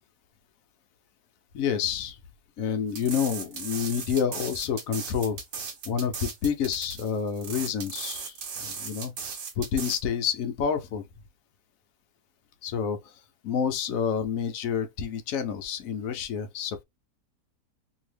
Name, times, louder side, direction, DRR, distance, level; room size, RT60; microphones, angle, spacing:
voice 1, 1.5-2.2 2.6-5.4 5.8-9.1 9.6-11.0 12.6-13.1 13.4-16.8, left 7 dB, 65° left, 0.9 m, -29 dB
sound 1, 2.9-10.0, right 6 dB, 65° right, 1.3 m, -37 dB
2.8 x 2.8 x 3.1 m
omnidirectional pair, 1.7 m